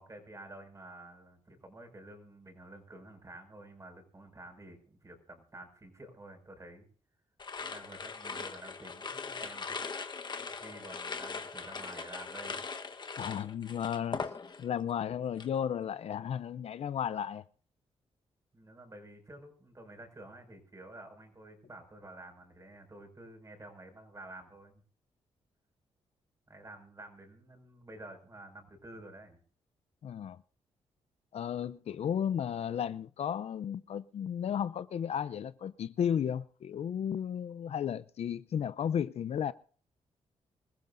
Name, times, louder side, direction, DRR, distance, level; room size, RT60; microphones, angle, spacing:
voice 1, 0.0-6.9 7.6-9.9 10.5-12.6 18.5-24.8 26.5-29.4, right 1 dB, 30° right, 5.8 m, -50 dB
sound 1, 7.4-14.8 15.1-15.6, left 4 dB, 40° left, 1.2 m, -40 dB
voice 2, 13.2-14.3 14.6-17.4 30.0-30.4 31.3-39.5, left 8 dB, 65° left, 0.6 m, -34 dB
25.5 x 15.0 x 2.6 m
cardioid pair, 80°, 11 cm